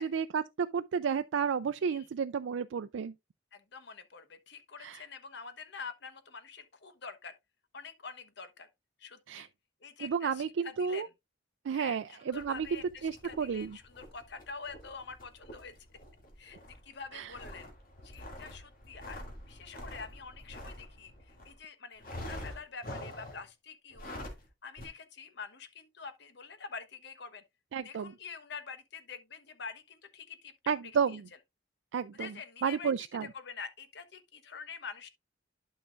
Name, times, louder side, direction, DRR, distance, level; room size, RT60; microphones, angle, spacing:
voice 1, 0.0-3.1 4.8-5.0 9.3-9.5 10.0-11.1 11.7-13.8 17.1-17.3 27.7-28.1 30.7-31.2 31.9-32.3 32.6-33.3, right 6 dB, 90° right, 0.4 m, -32 dB
voice 2, 3.5-7.3 7.7-8.7 9.0-9.5 9.8-11.1 11.7-15.7 16.4-17.7 18.0-24.1 24.6-27.4 27.8-30.7 31.1-31.2 32.1-35.1, left 5 dB, 65° left, 1.1 m, -46 dB
sound 1, 12.3-21.6 22.0-23.5 23.9-24.5 24.8-24.9, left 1 dB, 50° left, 2.4 m, -46 dB
11.5 x 5.6 x 2.5 m
head